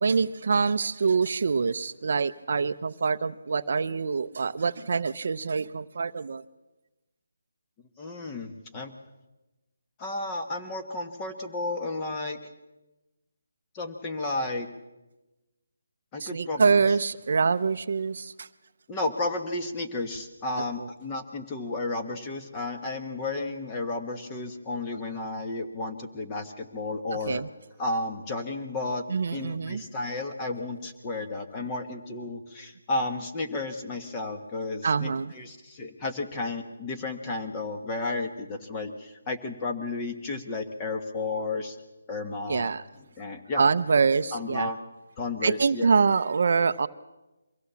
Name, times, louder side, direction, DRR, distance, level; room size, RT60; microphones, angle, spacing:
voice 1, 0.0-6.4 16.2-18.5 27.3-27.5 29.1-29.8 34.8-35.3 42.5-42.8 43.6-44.7 45.4-46.9, right 5 dB, 55° right, 13 dB, 0.6 m, -25 dB
voice 2, 8.0-8.9 10.0-12.4 13.7-14.7 16.1-16.7 18.9-27.4 27.8-29.0 29.3-41.8 42.1-42.7 43.0-43.6 44.3-44.8 45.2-46.0, left 2 dB, 20° left, 5 dB, 1.5 m, -32 dB
23.5 x 16.5 x 7.1 m, 1.1 s
hypercardioid pair, 165°, 0 cm